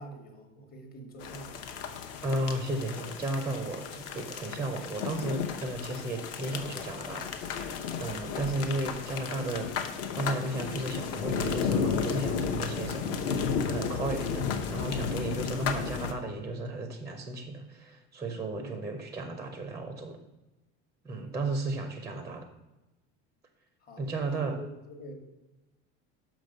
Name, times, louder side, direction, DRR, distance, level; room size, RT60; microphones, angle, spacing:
voice 1, 0.0-1.7 15.4-15.6 18.6-18.7 21.1-21.3 23.8-25.1, right 1 dB, 30° left, 5 dB, 1.2 m, -46 dB
sound 1, 1.2-16.1, left 6 dB, 55° left, 0.9 m, -33 dB
voice 2, 2.2-20.2 21.0-22.5 24.0-24.6, right 2 dB, 10° right, 6 dB, 0.4 m, -34 dB
6.2 x 5.2 x 6.4 m, 1.0 s
cardioid pair, 165°, 31 cm